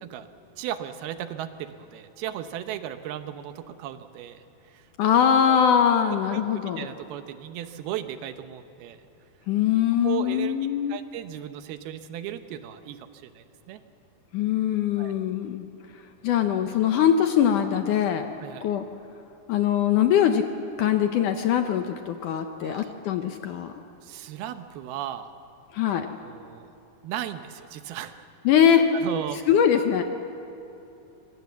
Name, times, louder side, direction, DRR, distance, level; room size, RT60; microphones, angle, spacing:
voice 1, 0.6-4.9 5.3-5.8 6.2-9.0 10.0-13.8 15.0-15.2 18.4-18.7 22.6-23.1 24.0-25.3 26.2-26.7 27.0-28.3 28.9-29.4, right 11 dB, 80° right, 9 dB, 2.8 m, -36 dB
voice 2, 5.0-6.8 9.5-11.0 14.3-15.7 16.2-18.3 18.6-18.8 19.5-20.5 20.8-23.7 25.7-26.1 28.5-28.9 29.5-30.0, left 9 dB, 70° left, 6 dB, 2.0 m, -22 dB
25.0 x 23.0 x 7.1 m, 2.9 s
omnidirectional pair, 4.5 m